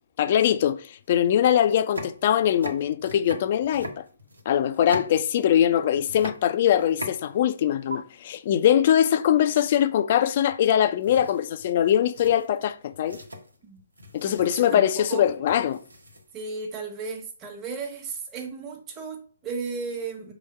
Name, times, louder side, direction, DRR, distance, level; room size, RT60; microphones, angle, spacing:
voice 1, 0.2-4.0 4.5-13.2 14.1-15.8, left 10 dB, 40° left, 0.5 m, -22 dB
sound 1, 1.0-1.1 1.6-5.7 6.0-7.6 7.9-8.0 10.5-10.8 11.0-16.5, equal, 80° right, 1.2 m, -41 dB
voice 2, 14.2-15.3 16.3-20.3, right 4 dB, 15° right, 1.3 m, -35 dB
4.9 x 3.5 x 5.5 m
figure-of-eight pair, 135°, 0 cm